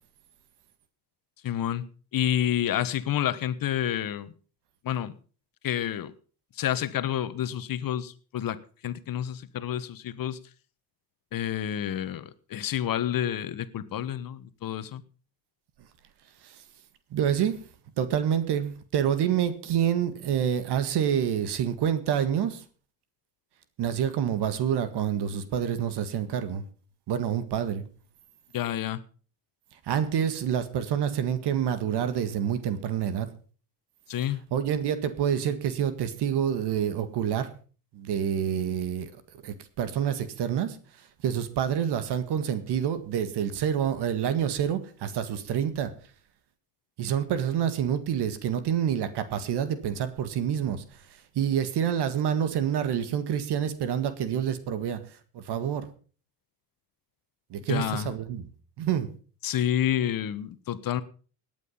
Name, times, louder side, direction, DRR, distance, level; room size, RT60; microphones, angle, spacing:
voice 1, 1.4-4.3 4.8-5.1 5.6-6.1 6.6-10.4 11.3-15.0 28.5-29.0 34.1-34.5 57.7-58.1 59.4-61.0, left 11 dB, 45° left, 14 dB, 1.3 m, -29 dB
voice 2, 17.1-17.5 18.0-22.6 23.8-26.6 27.1-27.9 29.8-33.3 34.5-37.5 37.9-39.1 39.4-40.8 41.2-45.9 47.0-50.8 51.4-55.0 55.3-55.9 57.5-58.4 58.8-59.1, right 9 dB, 60° right, 12 dB, 1.9 m, -27 dB
18.0 x 9.3 x 5.6 m, 0.40 s
supercardioid pair, 85°, 46 cm